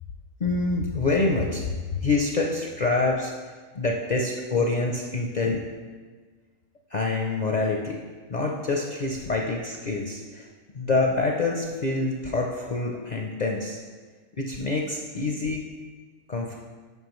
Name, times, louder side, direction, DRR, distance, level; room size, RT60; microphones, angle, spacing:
voice 1, 0.4-5.6 6.9-8.0 8.3-13.8 14.4-15.7 16.3-16.5, left 3 dB, 55° left, 0 dB, 0.5 m, -26 dB
9.1 x 5.6 x 3.1 m, 1.5 s
omnidirectional pair, 1.4 m